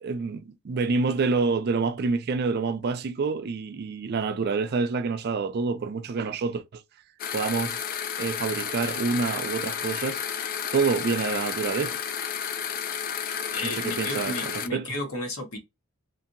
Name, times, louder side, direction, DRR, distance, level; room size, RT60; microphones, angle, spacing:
voice 1, 0.0-6.8 7.3-7.8 8.2-10.2 10.7-12.0 13.6-14.9, right 4 dB, 50° right, 0.4 m, -27 dB
sound 1, 7.2-14.7, left 8 dB, 45° left, 0.3 m, -32 dB
voice 2, 13.5-15.6, left 1 dB, 80° left, 1.2 m, -33 dB
2.8 x 2.5 x 2.5 m
head